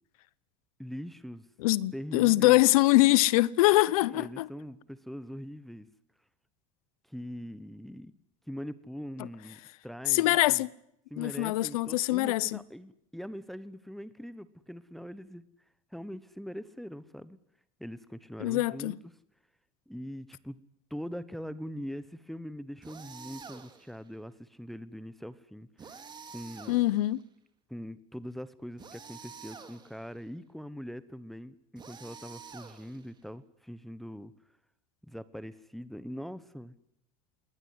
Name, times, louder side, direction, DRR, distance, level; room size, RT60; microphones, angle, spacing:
voice 1, 0.8-1.5 1.9-2.6 4.0-5.9 7.1-8.1 8.5-10.6 11.1-15.4 15.9-17.4 17.8-19.0 19.9-20.6 20.9-26.0 26.3-26.8 27.7-34.3 35.1-36.7, equal, ahead, 1.0 m, -42 dB
voice 2, 1.6-4.5 10.1-10.7 11.2-12.6 18.4-19.0 26.7-27.2, left 18 dB, 85° left, 0.9 m, -24 dB
sound 1, 22.8-24.0 25.8-27.2 28.8-30.1 31.8-33.2, right 6 dB, 25° right, 2.9 m, -48 dB
20.0 x 19.0 x 9.8 m
supercardioid pair, 120°, 18 cm